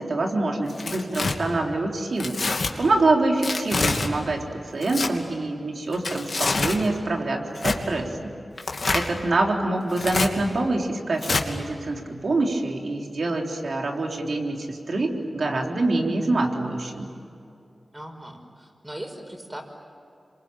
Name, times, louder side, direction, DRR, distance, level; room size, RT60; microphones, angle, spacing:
voice 1, 0.0-2.4 2.8-4.4 4.7-8.3 8.9-17.1, right 2 dB, 70° right, 1 dB, 3.6 m, -25 dB
Tearing, 0.7-1.3 2.2-2.7 3.4-4.1 4.8-5.1 5.9-6.8 7.6-7.8 8.6-9.1 9.9-10.3 11.2-11.4, left 3 dB, 65° left, 2.7 m, -26 dB
voice 2, 17.9-19.6, right 1 dB, 20° right, 3 dB, 5.9 m, -39 dB
27.5 x 24.5 x 8.9 m, 2.6 s
cardioid pair, 45°, 0 cm